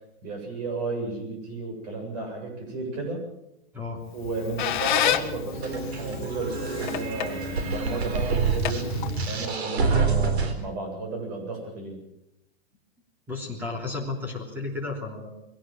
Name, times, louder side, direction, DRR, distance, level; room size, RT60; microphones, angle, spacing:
voice 1, 0.2-3.2 4.1-12.0, right 3 dB, 40° right, 2 dB, 7.9 m, -33 dB
Squeak, 4.1-9.5, left 11 dB, 50° left, 1.5 m, -31 dB
sound 1, 5.5-10.5, right 5 dB, 80° right, 4.1 m, -27 dB
voice 2, 13.3-15.3, left 3 dB, 5° right, 1 dB, 3.2 m, -33 dB
22.0 x 18.0 x 7.6 m, 0.87 s
supercardioid pair, 180°, 32 cm